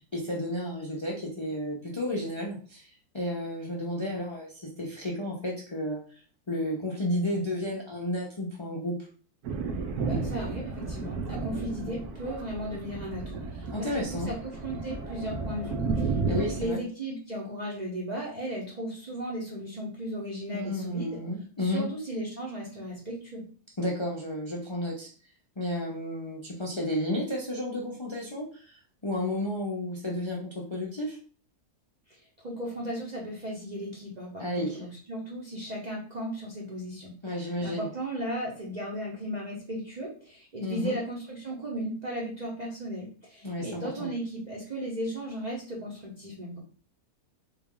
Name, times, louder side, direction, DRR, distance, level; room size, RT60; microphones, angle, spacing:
voice 1, 0.0-6.2 6.5-9.0 13.7-14.3 16.3-16.8 20.5-21.9 23.8-25.1 25.6-31.2 34.4-34.8 37.2-37.9 40.6-41.0 43.4-44.1, left 1 dB, 50° left, -3 dB, 0.3 m, -32 dB
Thunder, 9.4-16.7, right 4 dB, 90° right, 1.2 m, -33 dB
voice 2, 10.0-21.2 21.6-23.4 32.1-46.6, right 1 dB, 40° right, -3 dB, 0.7 m, -36 dB
3.7 x 2.4 x 3.6 m, 0.42 s
omnidirectional pair, 1.6 m